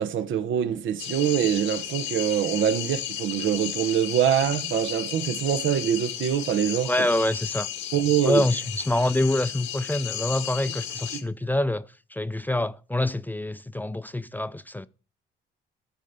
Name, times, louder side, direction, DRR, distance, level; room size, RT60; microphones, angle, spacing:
voice 1, 0.0-7.1 7.9-8.5, right 9 dB, 75° right, 1.0 m, -24 dB
sound 1, 1.0-11.2, left 11 dB, 85° left, 1.6 m, -34 dB
voice 2, 6.9-7.7 8.2-14.9, left 1 dB, 10° left, 0.5 m, -26 dB
13.0 x 4.5 x 6.7 m
cardioid pair, 90°, 20 cm